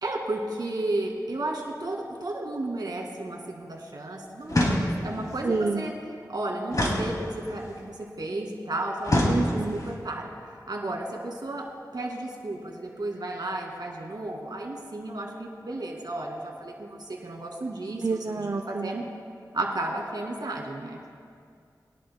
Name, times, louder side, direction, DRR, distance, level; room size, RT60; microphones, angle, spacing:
voice 1, 0.0-5.9 6.3-11.6 11.9-19.0 19.5-21.0, right 2 dB, 70° right, 0 dB, 2.2 m, -33 dB
sound 1, 4.5-5.2 6.7-7.7 9.0-9.9, left 1 dB, 55° left, 2.4 m, -25 dB
voice 2, 5.4-5.8 9.3-9.8 18.0-18.9, right 3 dB, 50° right, 5 dB, 0.5 m, -28 dB
22.0 x 11.0 x 2.2 m, 2.2 s
wide cardioid pair, 55°, 7 cm